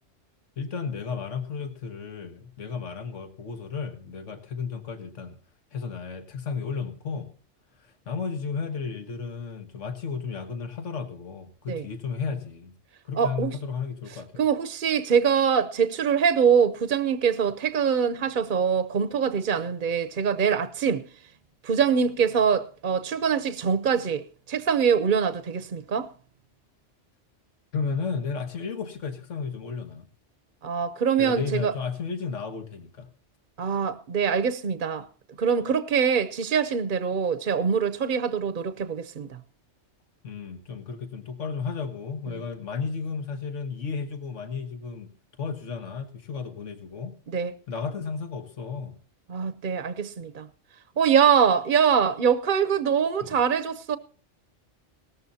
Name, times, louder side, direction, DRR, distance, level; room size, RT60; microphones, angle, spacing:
voice 1, 0.6-5.4 5.7-7.3 7.8-12.7 13.0-14.3 27.7-30.0 31.2-33.1 40.2-45.1 45.4-47.1 47.7-48.9 53.2-53.4, left 5 dB, 85° left, 1.7 m, -33 dB
voice 2, 13.2-13.6 14.4-21.1 21.6-26.1 30.6-31.7 33.6-35.1 35.4-39.4 47.3-47.5 49.3-50.5 51.0-54.0, right 7 dB, 50° right, 0.8 m, -24 dB
18.0 x 14.0 x 2.8 m
omnidirectional pair, 1.2 m